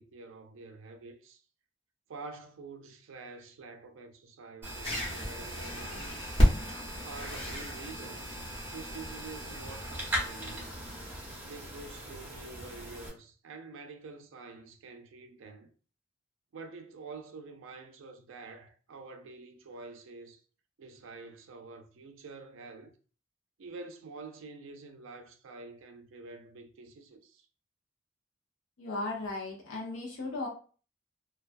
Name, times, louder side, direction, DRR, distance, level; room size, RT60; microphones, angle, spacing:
voice 1, 0.0-1.4 2.1-6.3 7.0-10.7 11.4-15.7 16.5-20.4 20.8-22.9 23.6-27.5, right 3 dB, 75° right, 0.4 m, -47 dB
sound 1, 4.6-13.1, equal, 10° right, 0.6 m, -40 dB
sound 2, 4.8-11.1, equal, 30° left, 0.7 m, -33 dB
voice 2, 28.8-30.5, left 2 dB, 75° left, 0.5 m, -36 dB
2.2 x 2.2 x 2.5 m
head